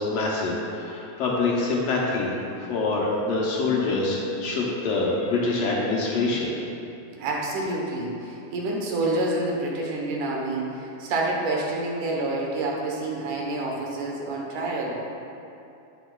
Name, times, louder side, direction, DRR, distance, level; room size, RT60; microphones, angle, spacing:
voice 1, 0.0-6.5, left 3 dB, 70° left, -4 dB, 1.7 m, -25 dB
voice 2, 7.1-15.0, right 2 dB, 90° right, -2 dB, 2.6 m, -28 dB
9.0 x 8.0 x 2.3 m, 2.7 s
omnidirectional pair, 3.4 m